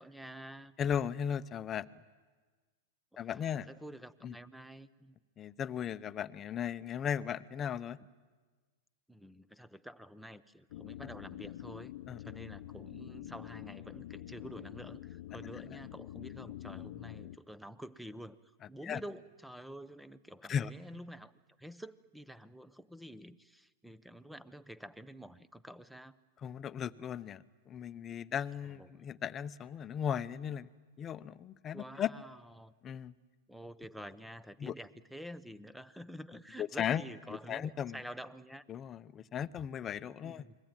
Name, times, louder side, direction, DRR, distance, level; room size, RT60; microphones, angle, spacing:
voice 1, 0.0-0.7 3.1-5.2 9.1-18.4 18.7-21.3 21.6-26.1 28.8-29.0 31.7-32.7 33.5-38.6 40.2-40.6, equal, ahead, 16 dB, 0.9 m, -49 dB
voice 2, 0.8-1.9 3.2-3.7 4.2-4.3 5.4-8.0 12.1-12.2 18.8-19.0 20.5-20.7 26.4-30.7 31.0-32.1 32.8-33.1 34.6-34.7 36.6-37.0 37.3-38.0 38.7-40.4, left 8 dB, 25° left, 14 dB, 0.8 m, -36 dB
sound 1, 10.7-17.4, left 14 dB, 65° left, 0.8 m, -46 dB
29.5 x 21.5 x 9.1 m, 1.4 s
hypercardioid pair, 130°, 0 cm